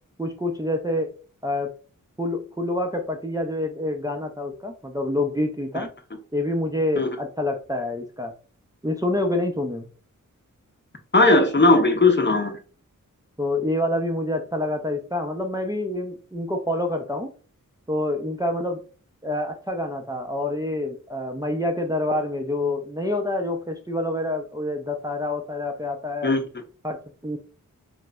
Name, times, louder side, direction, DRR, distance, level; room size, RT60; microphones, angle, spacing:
voice 1, 0.2-1.1 1.4-1.7 2.2-5.9 6.3-8.3 8.8-9.8 13.4-17.3 17.9-18.8 19.2-26.3 26.8-27.4, left 1 dB, 10° right, 3 dB, 0.5 m, -27 dB
voice 2, 11.1-12.6 26.2-26.4, left 2 dB, 35° left, 5 dB, 0.7 m, -17 dB
3.8 x 3.0 x 2.2 m, 0.38 s
wide cardioid pair, 50°, 33 cm